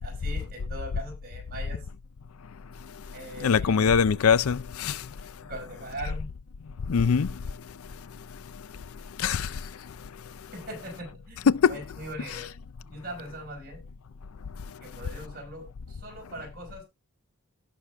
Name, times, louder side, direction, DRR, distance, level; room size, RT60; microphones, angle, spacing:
voice 1, 0.0-1.8 3.1-3.8 5.4-6.3 10.5-12.5 12.9-13.8 14.8-16.8, right 1 dB, 40° right, 5.3 m, -40 dB
voice 2, 3.4-5.0 6.9-7.3 9.2-9.5 11.5-11.8, left 6 dB, 75° left, 0.5 m, -22 dB
17.0 x 6.5 x 2.4 m
head